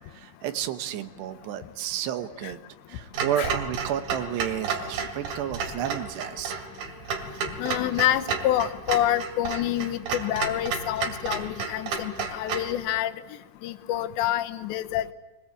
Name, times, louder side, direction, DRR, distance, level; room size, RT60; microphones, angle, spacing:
voice 1, 0.1-2.6 2.9-6.5, right 10 dB, 75° right, 11 dB, 3.1 m, -31 dB
Clock, 3.1-12.7, right 5 dB, 60° right, 3.9 m, -32 dB
voice 2, 7.6-13.1 13.6-15.1, left 13 dB, 80° left, 10 dB, 3.1 m, -27 dB
23.0 x 21.0 x 8.4 m, 1.2 s
omnidirectional pair, 5.1 m